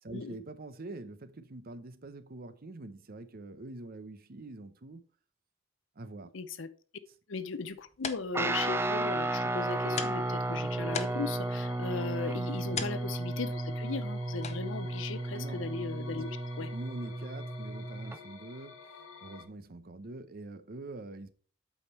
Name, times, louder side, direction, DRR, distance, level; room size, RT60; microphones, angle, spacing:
voice 1, 0.0-5.0 6.0-6.3 12.7-12.9 15.3-15.7 16.7-18.8 19.2-21.3, right 2 dB, 50° right, 0.8 m, -45 dB
voice 2, 6.3-6.7 7.3-16.7, left 4 dB, 70° left, 0.7 m, -38 dB
sound 1, 7.6-16.8, left 6 dB, 35° left, 0.7 m, -45 dB
Guitar, 8.3-18.2, right 2 dB, 10° right, 0.4 m, -33 dB
sound 2, 8.5-19.4, left 4 dB, 90° left, 1.3 m, -50 dB
8.3 x 5.2 x 4.3 m
head